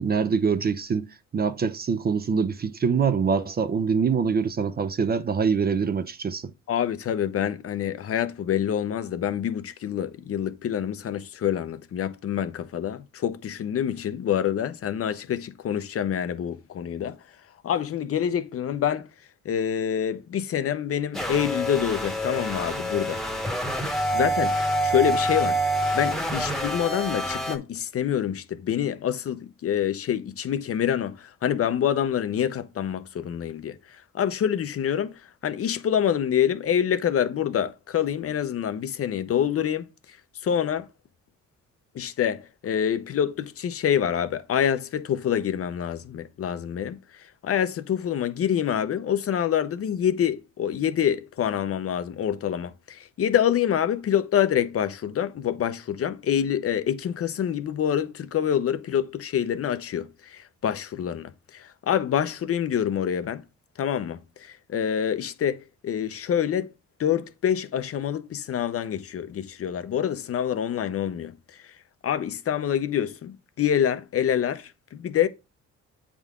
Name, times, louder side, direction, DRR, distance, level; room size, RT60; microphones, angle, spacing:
voice 1, 0.0-6.5, right 6 dB, 30° right, 0.5 m, -24 dB
voice 2, 6.7-17.2 17.6-19.1 19.4-23.2 24.1-25.6 25.9-35.1 35.4-39.9 40.4-40.9 41.9-63.4 63.8-66.7 67.0-71.3 72.0-75.3, left 9 dB, 50° left, 0.6 m, -26 dB
sound 1, 21.1-27.6, right 1 dB, ahead, 1.0 m, -27 dB
7.9 x 3.7 x 3.6 m
cardioid pair, 90°, 30 cm